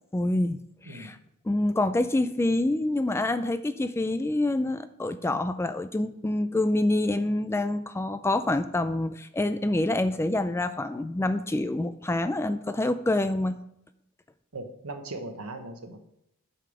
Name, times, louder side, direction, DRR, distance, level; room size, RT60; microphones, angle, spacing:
voice 1, 0.1-1.2 1.4-13.6, left 2 dB, 10° left, 11 dB, 0.3 m, -26 dB
voice 2, 0.8-1.2 14.5-16.0, right 2 dB, 75° right, 6 dB, 1.2 m, -39 dB
8.3 x 5.7 x 4.9 m, 0.78 s
head